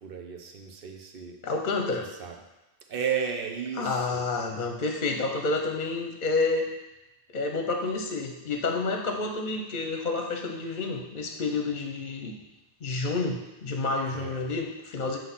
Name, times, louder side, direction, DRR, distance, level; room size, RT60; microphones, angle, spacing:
voice 1, 0.0-1.4 2.0-2.4 2.9-4.2 14.1-14.4, right 7 dB, 60° right, 3 dB, 1.0 m, -34 dB
voice 2, 1.4-2.1 3.8-6.7 7.3-12.4 12.8-15.2, left 3 dB, 50° left, 3 dB, 0.8 m, -29 dB
8.1 x 3.1 x 5.6 m, 1.0 s
omnidirectional pair, 1.1 m